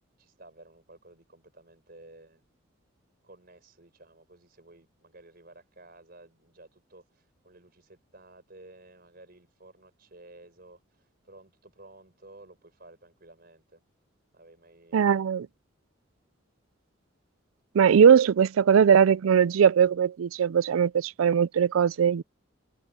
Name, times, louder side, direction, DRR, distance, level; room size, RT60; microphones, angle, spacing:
voice 1, 0.2-2.4 3.2-13.8 14.3-15.2, right 2 dB, 50° right, 5.1 m, -53 dB
voice 2, 14.9-15.5 17.7-22.2, right 7 dB, 85° right, 0.4 m, -20 dB
head